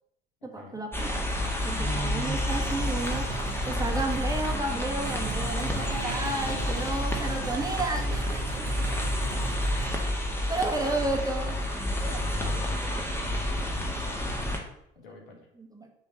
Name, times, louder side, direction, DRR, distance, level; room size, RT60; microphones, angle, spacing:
voice 1, 0.4-1.3 1.6-3.3 3.7-9.0 10.5-11.6 11.9-13.0 15.6-15.9, right 2 dB, 10° right, 2 dB, 1.5 m, -33 dB
sound 1, 0.9-14.6, left 1 dB, 10° left, 1.7 m, -29 dB
sound 2, 2.5-4.6 5.0-10.0, right 4 dB, 80° right, 1.3 m, -39 dB
voice 2, 5.5-6.8 7.3-7.5 10.7-10.9 14.1-15.5, left 3 dB, 75° left, 1 dB, 1.7 m, -46 dB
7.0 x 4.0 x 6.3 m, 0.78 s
figure-of-eight pair, 55°, 29 cm